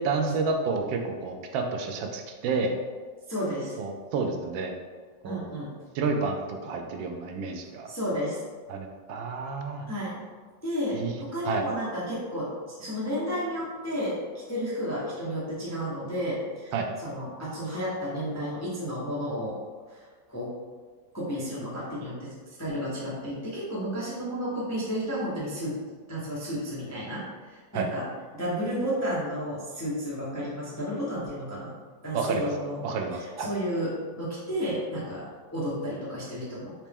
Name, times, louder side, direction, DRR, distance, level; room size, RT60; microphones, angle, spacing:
voice 1, 0.0-2.7 3.8-4.7 5.2-5.5 5.9-7.9 8.7-9.9 10.9-11.1 11.4-11.6 16.7-16.9 27.7-27.9 32.1-32.5 32.8-33.5, right 4 dB, 80° right, 3 dB, 1.3 m, -30 dB
voice 2, 3.3-3.8 5.2-5.7 7.9-8.4 9.9-10.2 10.6-12.5 12.8-14.2 14.5-16.7 17.0-19.6 19.9-20.0 20.3-20.5 21.1-22.3 22.6-25.8 26.1-28.1 28.3-31.7 32.0-32.8 33.2-36.7, equal, 25° left, -7 dB, 0.3 m, -32 dB
4.4 x 3.0 x 3.5 m, 1.5 s
omnidirectional pair, 2.1 m